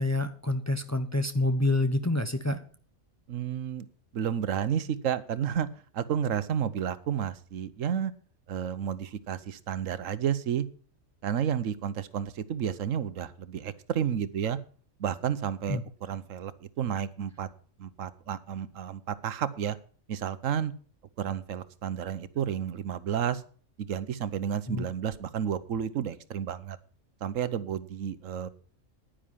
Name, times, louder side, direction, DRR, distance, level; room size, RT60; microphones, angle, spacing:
voice 1, 0.0-2.6 15.7-15.8 24.7-24.9, left 2 dB, 15° left, 9 dB, 0.8 m, -27 dB
voice 2, 3.3-3.9 4.1-5.7 5.9-8.1 8.5-10.7 11.2-14.6 15.0-17.5 17.8-19.8 20.1-20.7 21.2-23.4 23.8-26.8 27.2-28.5, right 9 dB, 85° right, 15 dB, 1.2 m, -31 dB
10.5 x 10.0 x 5.6 m, 0.43 s
omnidirectional pair, 1.3 m